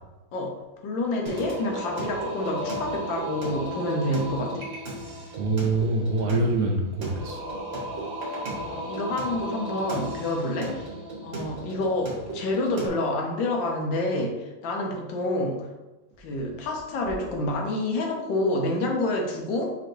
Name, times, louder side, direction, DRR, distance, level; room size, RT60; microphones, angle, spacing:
voice 1, 0.3-4.7 8.6-10.8 11.2-15.7 16.2-19.7, left 1 dB, 75° left, 1 dB, 1.4 m, -28 dB
Singing, 1.3-12.9, right 1 dB, 40° right, 1.1 m, -34 dB
voice 2, 5.4-7.4, right 2 dB, 85° right, 0 dB, 0.8 m, -25 dB
5.7 x 3.1 x 2.6 m, 1.1 s
omnidirectional pair, 2.2 m